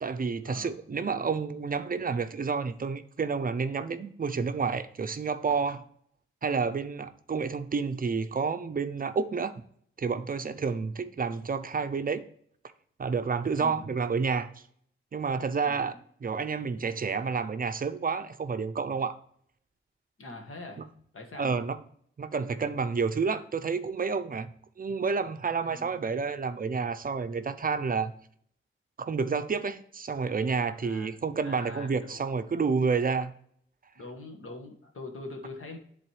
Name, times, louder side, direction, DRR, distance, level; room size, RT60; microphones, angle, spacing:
voice 1, 0.0-5.8 6.4-9.6 10.0-12.2 13.0-14.5 15.1-19.2 20.8-20.9 21.4-21.8 22.2-24.5 24.8-28.1 29.0-33.3, right 5 dB, 45° right, 11 dB, 0.5 m, -30 dB
voice 2, 13.5-13.9 15.6-16.0 20.2-20.9 21.1-21.6 25.6-26.0 30.8-32.2 33.9-35.8, left 2 dB, 80° left, 3 dB, 1.5 m, -43 dB
10.5 x 4.1 x 3.1 m, 0.63 s
wide cardioid pair, 150°, 21 cm